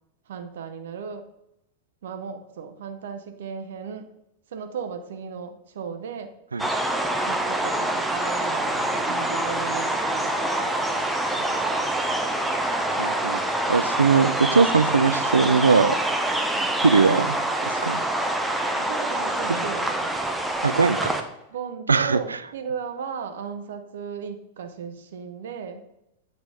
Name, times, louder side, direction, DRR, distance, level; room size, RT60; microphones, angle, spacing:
voice 1, 0.3-1.3 2.0-4.1 4.5-6.3 7.2-11.0 11.3-11.6 16.5-16.7 18.7-20.2 21.5-25.9, right 6 dB, 60° right, 8 dB, 0.7 m, -36 dB
sound 1, 6.6-21.2, right 1 dB, 5° right, 0.6 m, -25 dB
voice 2, 13.0-13.4 13.7-16.0 16.8-17.4 17.6-18.0 19.5-19.6 20.6-21.1 21.9-22.4, right 5 dB, 75° right, 13 dB, 0.3 m, -20 dB
8.0 x 4.0 x 3.3 m, 0.84 s
figure-of-eight pair, 90°, 0 cm